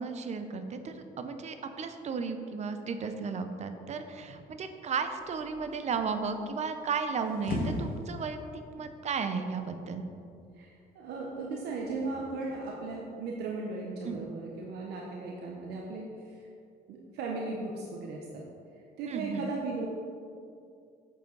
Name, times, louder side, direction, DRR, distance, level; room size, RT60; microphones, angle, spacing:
voice 1, 0.0-8.4 8.7-10.0 14.0-14.2 19.1-19.4, right 5 dB, 40° right, 8 dB, 0.7 m, -34 dB
sound 1, 5.2-12.7, left 1 dB, 60° left, 1.8 m, -41 dB
voice 2, 10.6-16.5 16.9-18.4 19.0-19.9, right 3 dB, 75° right, -1 dB, 1.0 m, -37 dB
8.0 x 7.0 x 4.0 m, 2.5 s
cardioid pair, 110°, 17 cm